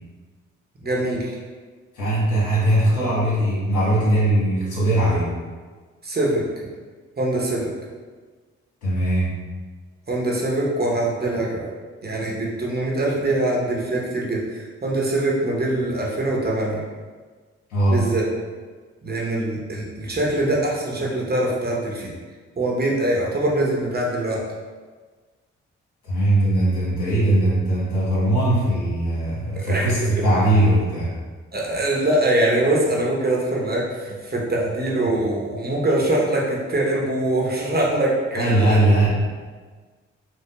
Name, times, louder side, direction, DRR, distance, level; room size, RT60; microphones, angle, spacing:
voice 1, 0.8-1.4 6.0-6.4 7.2-7.7 10.1-11.7 12.0-16.8 17.9-18.2 19.0-22.1 22.6-24.4 29.5-29.9 31.5-38.8, right 1 dB, 30° right, -4 dB, 0.9 m, -23 dB
voice 2, 1.9-5.3 8.8-9.3 17.7-18.0 26.0-31.1 38.3-39.1, right 1 dB, 70° left, -8 dB, 1.5 m, -20 dB
4.7 x 2.1 x 2.3 m, 1.4 s
supercardioid pair, 45°, 31 cm